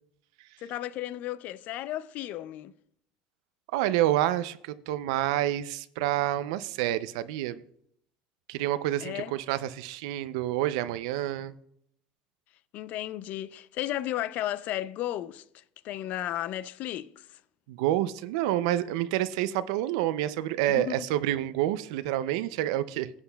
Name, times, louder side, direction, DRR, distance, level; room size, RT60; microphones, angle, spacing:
voice 1, 0.6-2.8 9.0-9.3 12.7-17.4 20.8-21.1, left 13 dB, 60° left, 0.5 m, -34 dB
voice 2, 3.7-7.6 8.5-11.5 17.7-23.1, right 13 dB, 85° right, 0.4 m, -28 dB
15.0 x 8.0 x 2.3 m
supercardioid pair, 110°, 3 cm